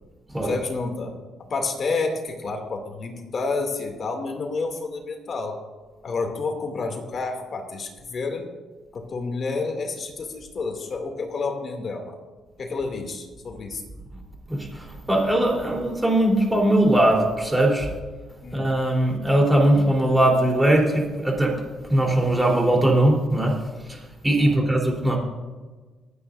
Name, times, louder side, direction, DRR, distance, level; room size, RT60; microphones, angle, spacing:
voice 1, 0.4-1.2 1.5-5.6 6.0-8.5 8.9-12.2 12.6-13.8 18.4-18.7 24.4-24.7, left 3 dB, 50° left, 3 dB, 2.5 m, -29 dB
voice 2, 14.5-17.9 18.5-21.5 21.9-23.6 23.9-25.2, right 1 dB, 10° right, -1 dB, 3.6 m, -20 dB
25.5 x 9.6 x 2.6 m, 1.3 s
cardioid pair, 90°, 0 cm